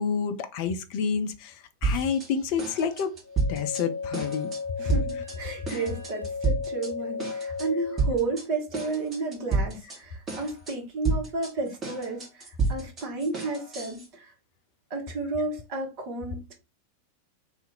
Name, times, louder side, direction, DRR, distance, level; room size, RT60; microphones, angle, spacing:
voice 1, 0.0-3.1 3.5-4.5 5.7-5.8, left 6 dB, 45° left, 0.4 m, -29 dB
sound 1, 1.8-2.3 2.6-3.8 4.1-4.6 4.9-5.4 5.7-6.9 7.2-7.7 8.0-8.4 8.7-10.0 10.3-10.7 11.0-14.1, right 3 dB, 25° right, 1.4 m, -30 dB
sound 2, 3.2-8.2, left 5 dB, 90° right, 0.4 m, -35 dB
voice 2, 4.8-14.3 14.9-16.5, right 3 dB, 40° right, 1.2 m, -32 dB
2.7 x 2.5 x 3.7 m
figure-of-eight pair, 90°, 0 cm